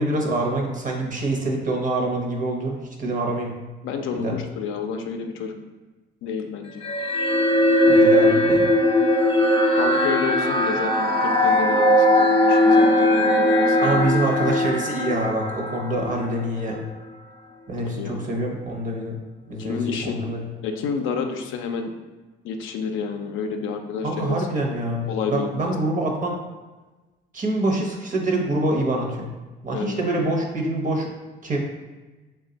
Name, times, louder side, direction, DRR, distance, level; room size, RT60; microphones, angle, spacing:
voice 1, 0.0-3.5 4.1-4.4 7.9-8.7 13.8-16.8 17.7-19.2 19.5-20.4 24.0-26.4 27.3-29.3 29.6-31.1 31.4-31.6, right 2 dB, 40° right, 1 dB, 0.8 m, -25 dB
voice 2, 3.8-5.6 6.2-6.8 9.7-14.0 17.8-18.2 19.6-20.3 20.6-21.9 22.4-24.4 25.1-25.8 29.7-30.0, left 6 dB, 80° left, 4 dB, 0.4 m, -29 dB
sound 1, 6.8-16.3, left 1 dB, 25° left, 0.5 m, -19 dB
3.2 x 2.3 x 3.9 m, 1.2 s
cardioid pair, 90°, 20 cm